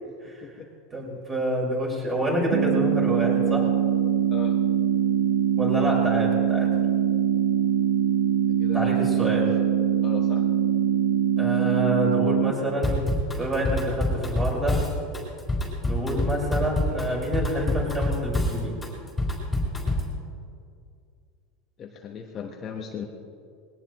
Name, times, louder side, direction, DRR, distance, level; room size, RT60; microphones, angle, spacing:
voice 1, 0.9-3.7 5.6-6.7 8.7-9.5 11.4-13.0 13.3-14.8 15.8-18.7, right 1 dB, 15° right, -3 dB, 5.0 m, -27 dB
sound 1, 2.5-12.5, right 9 dB, 70° right, 0.8 m, -23 dB
voice 2, 8.6-9.1 10.0-10.4 21.8-23.1, left 7 dB, 30° left, 1 dB, 1.2 m, -37 dB
Drum kit / Drum, 12.8-20.1, left 1 dB, 5° left, 3.9 m, -26 dB
21.0 x 18.0 x 3.1 m, 2.3 s
supercardioid pair, 155°, 0 cm